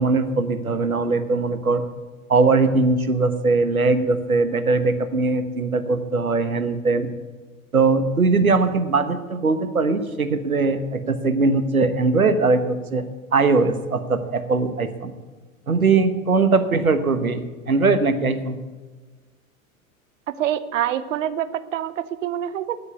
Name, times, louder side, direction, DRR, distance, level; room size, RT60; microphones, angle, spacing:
voice 1, 0.0-1.8 2.3-7.1 7.7-13.0 13.3-15.1 15.7-18.6, right 3 dB, 85° right, 10 dB, 1.3 m, -20 dB
voice 2, 20.3-22.8, right 11 dB, 65° right, 14 dB, 1.0 m, -26 dB
10.0 x 9.7 x 9.4 m, 1.3 s
figure-of-eight pair, 85°, 41 cm